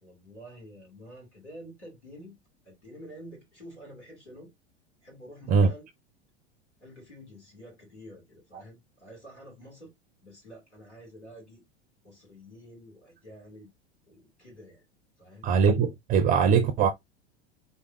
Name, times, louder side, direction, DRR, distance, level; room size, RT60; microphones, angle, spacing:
voice 1, 0.0-2.4 2.6-4.5 5.0-5.9 6.8-9.9 10.2-11.6 12.0-13.7 14.1-14.8 15.2-15.5, equal, 85° left, 2.7 m, -48 dB
voice 2, 15.4-16.9, right 6 dB, 25° right, 0.5 m, -22 dB
4.0 x 3.5 x 2.6 m
figure-of-eight pair, 85°, 34 cm